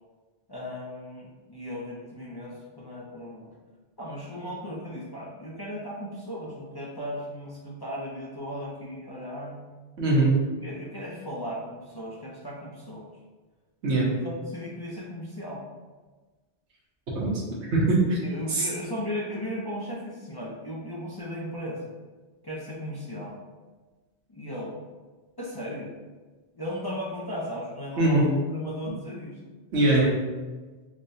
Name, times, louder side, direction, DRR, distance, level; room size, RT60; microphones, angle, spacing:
voice 1, 0.5-3.5 4.0-9.6 10.6-13.1 14.1-15.6 18.2-21.9 22.4-23.4 24.3-24.8 25.4-25.9 26.5-29.4, equal, 35° left, -6 dB, 0.4 m, -36 dB
voice 2, 10.0-10.4 13.8-14.1 17.1-17.4 17.7-18.2 18.5-18.7 28.0-28.2 29.7-30.2, right 2 dB, 80° right, -5 dB, 1.2 m, -21 dB
5.2 x 2.1 x 2.6 m, 1.3 s
omnidirectional pair, 1.2 m